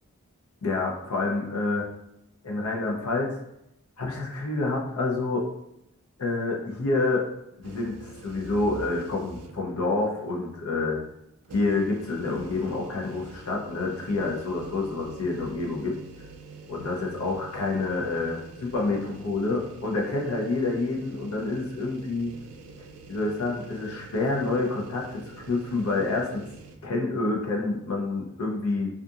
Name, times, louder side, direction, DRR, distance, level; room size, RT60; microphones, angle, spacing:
voice 1, 0.6-1.9 2.4-3.3 4.0-5.5 6.2-7.3 7.6-11.0 11.5-16.0 16.7-22.3 23.1-26.4 26.8-28.9, left 3 dB, 90° left, -1 dB, 0.6 m, -28 dB
sound 1, 7.6-9.8 10.2-10.3 11.4-26.8, right 4 dB, 85° right, 0.3 m, -46 dB
2.6 x 2.4 x 2.4 m, 0.82 s
head